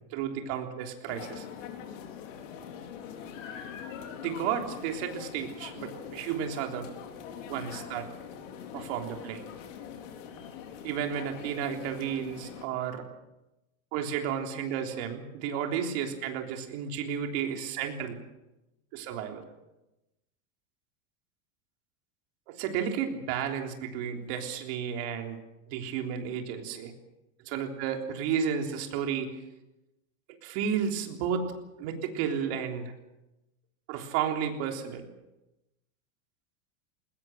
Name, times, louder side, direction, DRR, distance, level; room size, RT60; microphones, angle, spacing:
voice 1, 0.1-1.5 4.2-6.9 7.5-8.1 8.7-9.4 10.8-13.0 13.9-18.2 18.9-19.4 22.5-25.4 25.7-26.9 27.4-29.4 30.4-31.5 31.8-32.9 33.9-35.1, right 8 dB, 50° right, 3 dB, 3.6 m, -32 dB
sound 1, 1.1-12.7, left 8 dB, 65° left, 4.1 m, -43 dB
21.5 x 20.0 x 7.8 m, 0.97 s
supercardioid pair, 175°, 41 cm